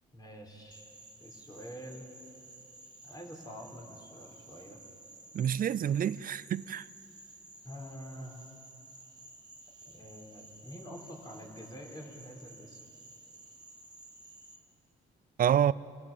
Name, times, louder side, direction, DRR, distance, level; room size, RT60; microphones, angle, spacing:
voice 1, 0.1-0.9 1.2-2.1 3.0-4.8 7.6-8.4 9.8-12.8, equal, 20° left, 4.3 m, -47 dB
Frog, 0.7-14.6, right 2 dB, 20° right, 3.1 m, -54 dB
voice 2, 5.3-6.9 15.4-15.7, right 9 dB, 45° right, 0.5 m, -27 dB
27.0 x 16.0 x 7.5 m
cardioid pair, 90°, 20 cm